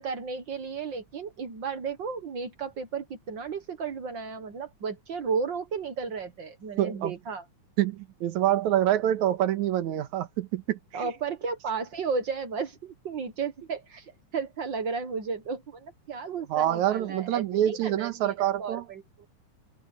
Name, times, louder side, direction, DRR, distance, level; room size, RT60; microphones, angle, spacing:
voice 1, 0.0-7.4 10.9-19.3, right 5 dB, 50° right, 1.5 m, -34 dB
voice 2, 6.8-7.1 7.8-11.1 16.5-18.8, right 12 dB, 80° right, 2.6 m, -26 dB
omnidirectional pair, 3.4 m